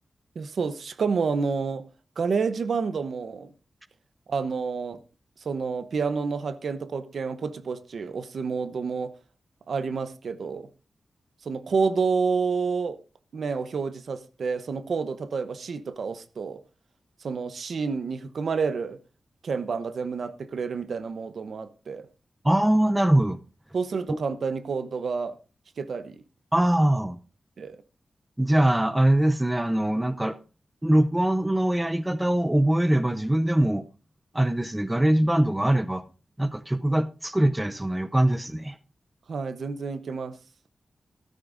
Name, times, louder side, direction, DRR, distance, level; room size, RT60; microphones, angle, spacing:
voice 1, 0.3-1.8 2.2-3.5 4.3-5.0 5.4-9.1 9.7-10.7 11.5-13.0 13.3-16.6 17.2-19.0 19.4-22.1 23.7-25.4 25.8-26.2 27.6-27.8 39.3-40.3, right 5 dB, 70° right, 0.9 m, -29 dB
voice 2, 22.4-23.4 24.1-24.2 26.5-27.2 28.4-30.4 30.8-33.8 34.3-36.0 36.4-38.8, right 1 dB, 10° right, 0.6 m, -22 dB
13.5 x 13.0 x 2.6 m
wide cardioid pair, 105°, 0 cm